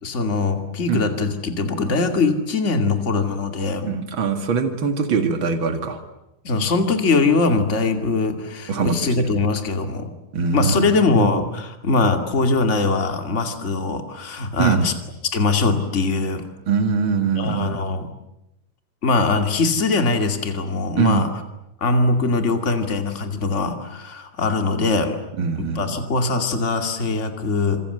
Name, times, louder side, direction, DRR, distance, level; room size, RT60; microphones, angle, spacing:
voice 1, 0.0-3.9 6.4-10.1 10.5-14.9 15.2-16.5 17.4-18.1 19.0-21.3 21.8-25.1 25.6-27.8, left 3 dB, 55° left, 5 dB, 0.7 m, -21 dB
voice 2, 3.8-6.0 8.7-9.3 10.3-11.3 14.6-14.9 16.7-17.8 21.0-21.2 25.4-26.0, right 5 dB, 85° right, 6 dB, 1.1 m, -22 dB
27.0 x 27.0 x 8.0 m, 0.91 s
omnidirectional pair, 5.6 m